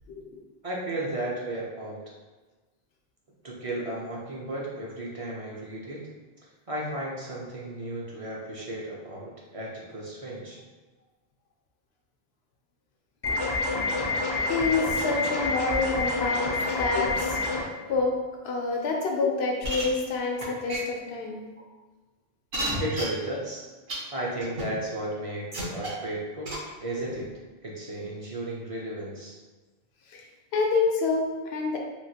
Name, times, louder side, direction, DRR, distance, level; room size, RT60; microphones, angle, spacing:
voice 1, 0.1-0.4 14.4-17.4 17.9-18.2 18.4-21.5 27.1-27.2 30.1-30.2 30.5-31.8, left 4 dB, 90° left, 0 dB, 0.8 m, -27 dB
voice 2, 0.6-2.0 3.4-6.0 6.7-10.6 22.8-23.6 24.1-26.5 26.8-27.3 27.6-29.3, right 1 dB, 45° right, -4 dB, 0.5 m, -34 dB
sound 1, 13.2-17.6, left 3 dB, 40° left, 0.3 m, -27 dB
sound 2, 19.6-19.8 20.4-20.5 20.7-20.8 21.6-21.7 22.5-23.0 23.9-24.0 24.4-24.6 25.5-25.9 26.5-26.6, right 1 dB, 65° right, 1.0 m, -30 dB
3.1 x 2.4 x 2.7 m, 1.2 s
omnidirectional pair, 1.0 m